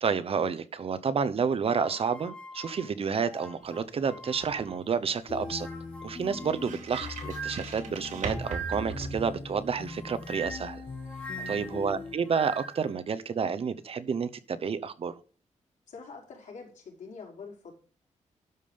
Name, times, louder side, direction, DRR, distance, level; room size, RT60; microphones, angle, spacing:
voice 1, 0.0-5.7 6.0-10.8 11.5-15.2, right 6 dB, 50° right, 0.8 m, -30 dB
sound 1, 1.6-4.9 5.3-9.1 9.9-12.9, right 3 dB, 10° left, 2.8 m, -43 dB
sound 2, 3.6-9.9, right 4 dB, 75° right, 2.5 m, -41 dB
sound 3, 5.3-12.1, left 4 dB, 45° left, 1.6 m, -41 dB
voice 2, 11.4-11.7 15.9-17.7, left 5 dB, 75° left, 5.2 m, -46 dB
12.0 x 5.2 x 5.4 m
wide cardioid pair, 125°, 13 cm